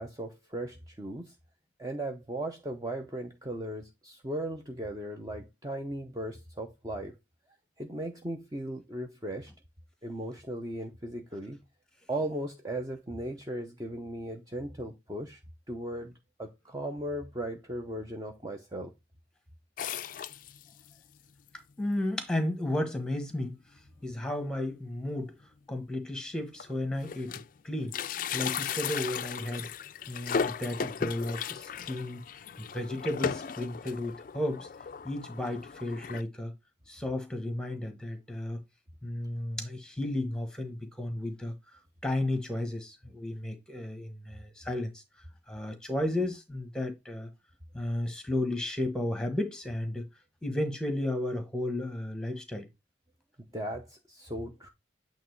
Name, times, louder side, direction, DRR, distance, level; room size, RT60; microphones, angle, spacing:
voice 1, 0.0-1.3 1.8-7.1 7.8-9.5 10.0-11.6 12.1-15.4 15.7-16.1 16.4-18.9 53.5-54.7, right 1 dB, 20° right, 0.7 m, -37 dB
sound 1, 19.8-20.9 21.5-21.6 21.8-21.9 22.7-22.9 23.2-23.4 23.8-23.9 25.1-25.2 25.9-26.0 26.3-27.6 27.8-36.2, left 6 dB, 45° left, 0.3 m, -36 dB
voice 2, 21.8-23.6 24.0-25.3 25.7-28.0 28.3-29.7 30.1-32.2 32.6-34.7 35.0-36.5 36.9-38.6 39.0-45.0 45.5-47.3 47.7-50.1 50.4-52.7, left 1 dB, 5° left, 1.2 m, -33 dB
8.6 x 3.0 x 4.5 m
head